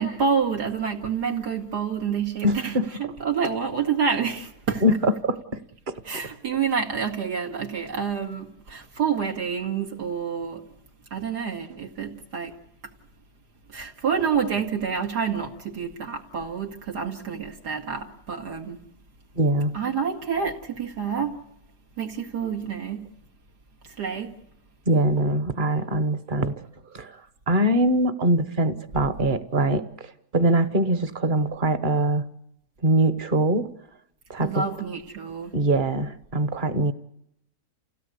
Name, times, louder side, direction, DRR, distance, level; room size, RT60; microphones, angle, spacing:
voice 1, 0.0-4.8 6.0-10.7 11.1-12.5 12.8-12.9 13.7-18.8 19.7-21.4 22.0-23.1 23.8-24.4 34.4-35.5, right 6 dB, 85° right, 2.8 m, -28 dB
voice 2, 2.4-2.9 4.8-5.4 5.9-6.0 19.4-19.7 24.9-26.6 26.9-27.1 27.5-32.2 32.8-33.7 34.3-34.6 35.5-36.9, right 1 dB, 35° right, 1.0 m, -23 dB
28.0 x 16.5 x 8.2 m
omnidirectional pair, 1.7 m